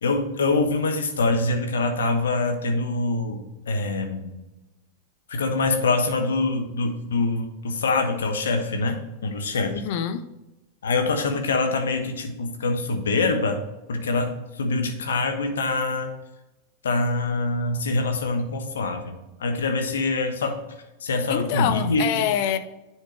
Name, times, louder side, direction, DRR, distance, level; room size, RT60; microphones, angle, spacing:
voice 1, 0.0-4.4 5.3-9.8 10.8-13.6 13.9-16.1 16.8-20.6 21.0-22.3, left 3 dB, 65° left, 5 dB, 1.2 m, -25 dB
voice 2, 9.7-10.2 21.3-22.6, left 10 dB, 50° left, 11 dB, 0.6 m, -25 dB
10.0 x 4.6 x 3.2 m, 0.98 s
figure-of-eight pair, 90°, 0 cm